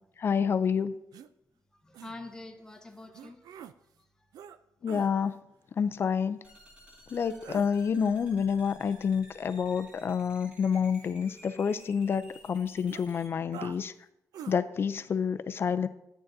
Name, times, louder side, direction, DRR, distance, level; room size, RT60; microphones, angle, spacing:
voice 1, 0.2-0.9 4.8-5.4 5.8-6.4 7.1-13.9 14.5-15.9, left 6 dB, 40° left, 11 dB, 0.4 m, -28 dB
sound 1, 1.1-1.3 1.9-2.2 3.1-3.7 4.3-4.6 4.9-5.1 7.2-7.7 10.7-12.1 12.4-12.5 12.9-13.0 13.5-13.8 14.3-14.6, right 8 dB, 80° right, 0.4 m, -46 dB
voice 2, 1.8-3.7 7.2-7.3, left 2 dB, 10° left, 3 dB, 0.9 m, -46 dB
sound 2, 6.4-13.3, equal, 20° right, 2.0 m, -55 dB
11.0 x 8.9 x 2.6 m, 0.85 s
wide cardioid pair, 145°, 6 cm